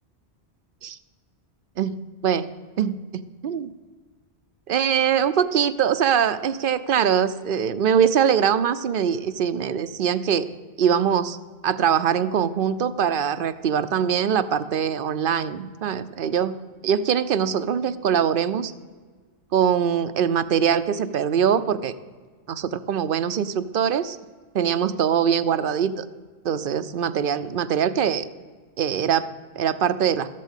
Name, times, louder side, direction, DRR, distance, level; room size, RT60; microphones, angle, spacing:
voice 1, 1.8-2.5 2.8-3.7 4.7-10.5 10.8-11.4 11.6-16.6 16.8-18.7 19.5-21.9 22.5-24.2 24.5-26.0 26.4-28.3 28.8-30.3, right 8 dB, 60° right, 13 dB, 0.7 m, -23 dB
13.0 x 8.4 x 8.2 m, 1.5 s
omnidirectional pair, 1.1 m